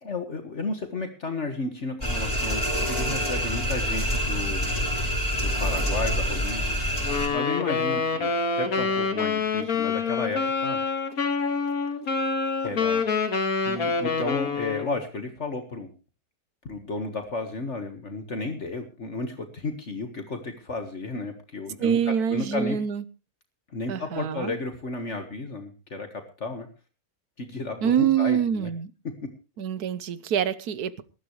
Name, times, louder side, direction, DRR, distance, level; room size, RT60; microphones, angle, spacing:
voice 1, 0.0-4.7 5.3-6.7 7.3-10.8 12.6-13.0 13.7-15.9 16.7-22.8 23.7-26.7 27.4-28.7, left 3 dB, 50° left, 1.9 m, -33 dB
sound 1, 2.0-7.3, equal, 15° left, 7.1 m, -26 dB
Wind instrument woodwind instrument, 7.0-15.0, left 4 dB, 70° left, 2.2 m, -26 dB
voice 2, 21.8-23.0 23.9-24.5 27.8-28.9 29.6-31.0, right 8 dB, 85° right, 1.5 m, -25 dB
19.5 x 13.5 x 3.2 m
omnidirectional pair, 1.6 m